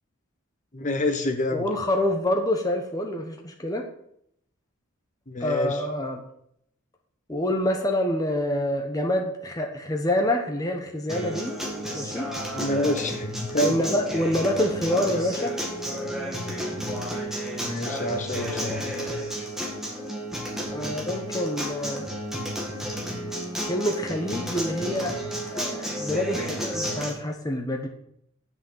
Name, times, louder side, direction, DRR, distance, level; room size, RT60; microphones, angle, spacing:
voice 1, 0.7-1.7 5.3-5.8 12.5-13.8 17.6-18.9, left 1 dB, 35° left, 6 dB, 1.1 m, -27 dB
voice 2, 1.5-3.8 5.4-6.2 7.3-11.5 11.9-12.3 13.6-15.6 20.7-22.0 23.6-25.1 25.4-27.9, left 1 dB, 15° left, 2 dB, 1.0 m, -27 dB
Acoustic guitar, 11.1-27.1, equal, ahead, 1.7 m, -32 dB
7.9 x 6.4 x 7.5 m, 0.72 s
head